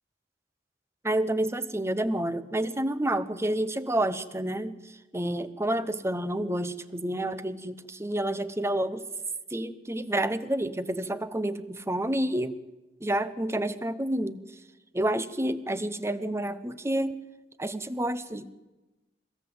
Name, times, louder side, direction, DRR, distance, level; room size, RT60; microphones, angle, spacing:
voice 1, 1.0-9.0 9.5-12.5 13.0-14.4 14.9-17.1 17.6-18.5, right 1 dB, 15° right, 12 dB, 1.0 m, -29 dB
23.5 x 17.5 x 8.0 m, 1.1 s
head